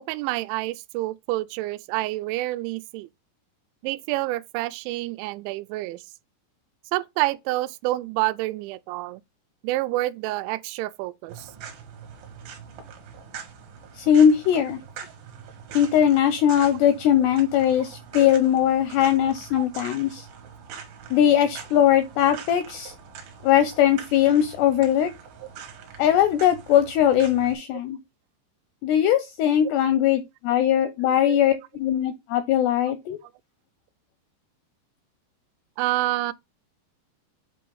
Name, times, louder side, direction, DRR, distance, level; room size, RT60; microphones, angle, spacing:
voice 1, 0.0-3.1 3.8-6.0 6.9-9.2 9.6-11.5 17.2-17.3 18.2-18.4 19.1-19.6 31.0-31.4 35.8-36.3, right 18 dB, 85° right, 2.8 m, -28 dB
sound 1, 11.3-27.5, right 7 dB, 65° right, 2.9 m, -43 dB
voice 2, 14.0-14.8 15.7-20.3 21.1-22.9 23.4-25.1 26.0-28.0 28.8-33.2, left 10 dB, 80° left, 2.4 m, -20 dB
8.4 x 2.9 x 5.3 m
omnidirectional pair, 5.5 m